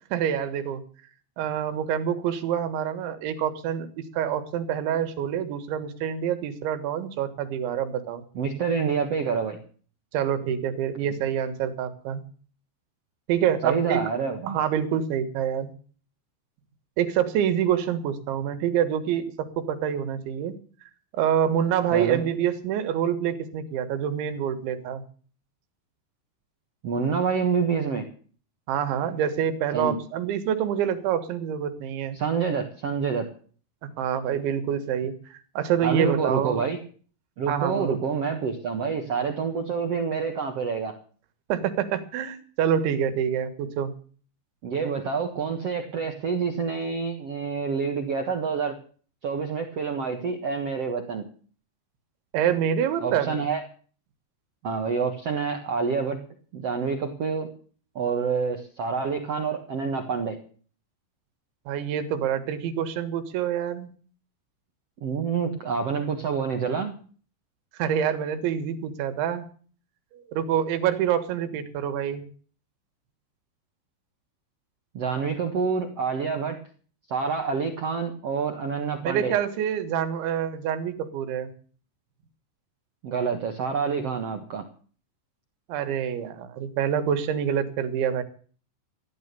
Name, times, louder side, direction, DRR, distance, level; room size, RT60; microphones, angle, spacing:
voice 1, 0.1-0.8 1.4-8.2 10.1-12.2 13.3-14.1 14.5-15.7 17.0-20.6 21.1-25.0 28.7-32.2 33.8-35.1 35.6-36.6 37.5-38.0 41.5-43.9 52.3-53.4 61.7-63.9 67.8-69.5 70.1-72.2 79.0-81.5 85.7-88.2, right 9 dB, 85° right, 9 dB, 3.9 m, -26 dB
voice 2, 8.3-9.6 13.6-14.6 21.9-22.2 26.8-28.1 29.7-30.0 32.1-33.3 35.8-36.8 37.4-40.9 44.6-48.8 49.2-51.2 53.0-53.6 54.6-56.2 56.5-57.5 57.9-60.4 65.0-66.9 74.9-76.6 77.1-79.3 83.0-84.6, right 5 dB, 65° right, 4 dB, 1.5 m, -27 dB
15.0 x 11.0 x 6.8 m, 0.43 s
omnidirectional pair, 5.2 m